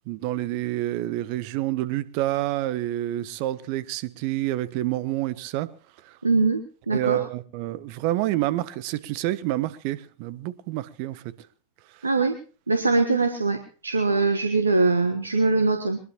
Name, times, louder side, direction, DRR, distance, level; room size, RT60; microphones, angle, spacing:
voice 1, 0.1-5.7 6.0-6.2 6.9-11.2, right 15 dB, 45° right, 1.0 m, -28 dB
voice 2, 6.2-7.2 12.0-12.4 12.7-16.0, right 3 dB, 80° right, 1.4 m, -22 dB
22.0 x 20.5 x 3.0 m
figure-of-eight pair, 90°, 0 cm